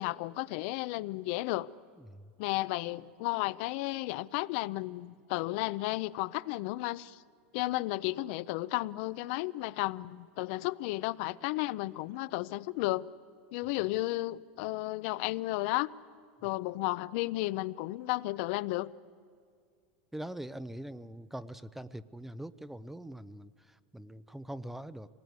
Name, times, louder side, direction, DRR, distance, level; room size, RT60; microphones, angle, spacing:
voice 1, 0.0-1.7 2.4-7.2 7.5-13.1 13.5-15.9 16.4-18.9, left 19 dB, 65° left, 0.5 m, -33 dB
voice 2, 20.1-25.1, right 1 dB, 5° right, 0.5 m, -43 dB
25.0 x 19.0 x 9.5 m
supercardioid pair, 130°, 6 cm